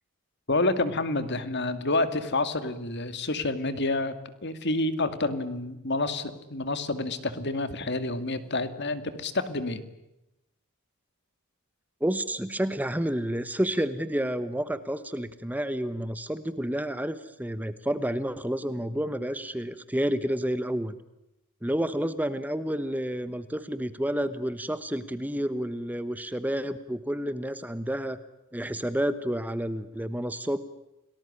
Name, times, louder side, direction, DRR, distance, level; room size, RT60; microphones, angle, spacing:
voice 1, 0.5-4.1 4.4-9.8, left 2 dB, 50° left, 11 dB, 2.3 m, -28 dB
voice 2, 12.0-21.0 21.6-28.2 28.5-30.6, equal, 10° right, 12 dB, 1.1 m, -30 dB
29.5 x 19.5 x 9.9 m, 0.91 s
head